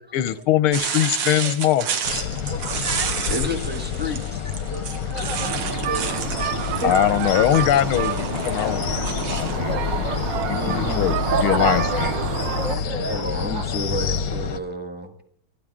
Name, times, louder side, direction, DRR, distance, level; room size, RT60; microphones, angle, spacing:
voice 1, 0.1-1.9 6.8-9.0 9.3-10.1 10.5-12.1, left 12 dB, 90° left, 15 dB, 1.6 m, -22 dB
sound 1, 0.7-9.6, right 6 dB, 85° right, 2.5 m, -31 dB
sound 2, 2.0-14.6, left 7 dB, 55° left, 1.1 m, -28 dB
voice 2, 2.6-3.1 4.7-5.6 5.9-6.5 6.8-6.9 9.6-10.2 11.3-13.1 13.5-13.6, right 2 dB, 45° right, 7 dB, 1.2 m, -29 dB
voice 3, 3.3-4.6 9.9-11.2 12.8-15.1, left 1 dB, 5° right, 6 dB, 1.4 m, -31 dB
sound 3, 5.3-12.8, right 10 dB, 65° right, 1.4 m, -29 dB
28.5 x 10.5 x 3.7 m, 0.67 s
omnidirectional pair, 2.3 m